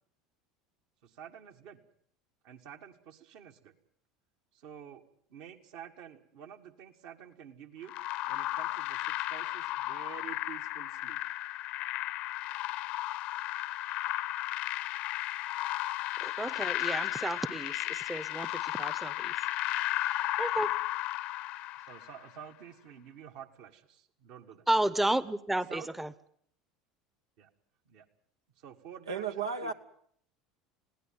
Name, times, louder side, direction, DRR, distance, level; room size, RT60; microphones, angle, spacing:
voice 1, 1.0-1.8 2.4-3.7 4.5-5.0 5.3-7.9 8.3-11.2 20.6-20.7 21.8-24.6 25.7-25.9 27.4-27.5 27.9-28.1 28.6-29.7, right 9 dB, 55° right, 1.9 m, -49 dB
sound 1, 7.9-22.3, left 16 dB, 50° left, 0.8 m, -34 dB
voice 2, 16.2-19.3 20.4-20.7 24.7-26.1, right 1 dB, 5° right, 0.8 m, -32 dB
voice 3, 29.1-29.7, right 5 dB, 80° right, 0.9 m, -33 dB
20.5 x 16.5 x 9.3 m
figure-of-eight pair, 70°, 2 cm